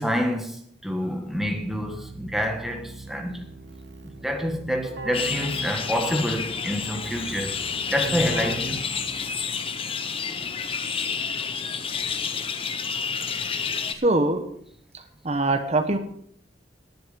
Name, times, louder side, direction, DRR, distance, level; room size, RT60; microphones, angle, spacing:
voice 1, 0.0-3.5 4.2-7.6 7.9-8.9, equal, ahead, 1.6 m, -27 dB
Keyboard (musical), 1.3-9.6, right 3 dB, 75° right, 1.3 m, -40 dB
sound 1, 5.1-13.9, left 6 dB, 30° left, 0.9 m, -29 dB
voice 2, 14.0-14.4 15.2-16.0, right 2 dB, 35° right, 1.2 m, -22 dB
18.5 x 7.7 x 5.2 m
head